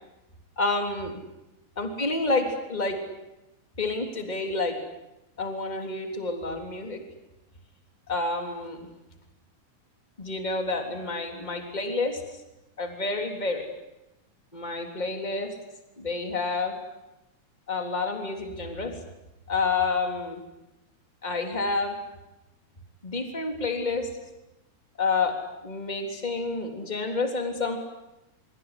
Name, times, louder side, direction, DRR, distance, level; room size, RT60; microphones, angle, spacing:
voice 1, 0.6-1.2 1.8-3.0 3.8-4.7 5.4-7.0 8.1-8.9 10.2-12.4 12.8-13.7 14.5-15.5 16.0-16.8 17.7-18.9 19.5-20.4 21.2-21.9 23.0-24.1 25.0-25.3 25.6-27.8, left 3 dB, 15° left, 4 dB, 3.4 m, -29 dB
24.5 x 24.5 x 10.0 m, 0.94 s
omnidirectional pair, 3.4 m